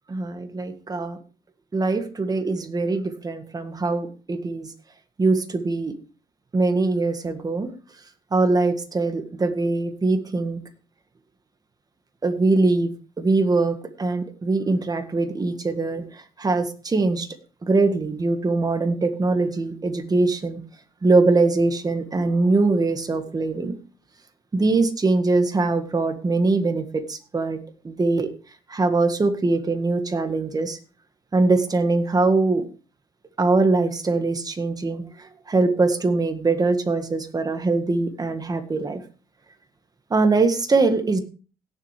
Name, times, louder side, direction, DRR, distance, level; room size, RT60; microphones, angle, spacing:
voice 1, 0.1-1.2 1.7-4.7 5.2-5.9 6.5-7.7 8.3-10.6 12.2-12.9 13.2-17.3 17.6-20.6 21.0-23.8 24.5-27.6 27.8-28.3 28.7-30.8 31.3-32.7 33.4-39.0 40.1-41.2, right 3 dB, 20° right, 8 dB, 1.6 m, -22 dB
17.0 x 7.4 x 3.2 m, 0.36 s
cardioid pair, 110°, 17 cm